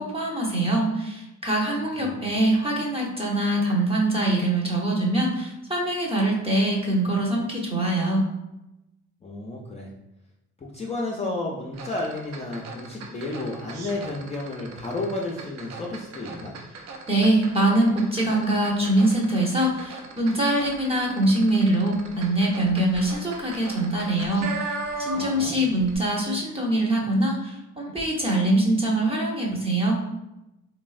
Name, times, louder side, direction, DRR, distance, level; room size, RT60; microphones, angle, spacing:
voice 1, 0.0-8.2 17.1-30.0, right 1 dB, 20° right, -1 dB, 0.7 m, -23 dB
voice 2, 9.2-9.9 10.6-16.5 25.1-25.7, left 2 dB, 20° left, -3 dB, 0.4 m, -32 dB
sound 1, 11.7-25.5 25.8-26.0, right 3 dB, 60° right, 0.5 m, -38 dB
3.0 x 2.1 x 2.4 m, 0.93 s
cardioid pair, 90°, 30 cm